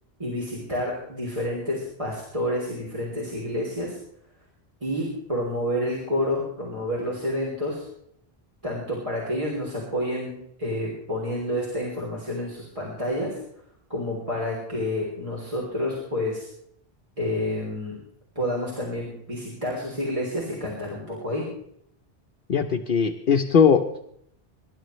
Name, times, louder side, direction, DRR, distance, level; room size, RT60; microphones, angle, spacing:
voice 1, 0.2-4.0 4.8-7.9 8.6-13.4 13.9-16.5 17.2-18.0 18.3-21.5, left 1 dB, 30° right, -5 dB, 3.4 m, -29 dB
voice 2, 22.5-24.0, left 6 dB, 60° left, 3 dB, 1.0 m, -20 dB
25.0 x 12.0 x 3.2 m, 0.71 s
omnidirectional pair, 1.1 m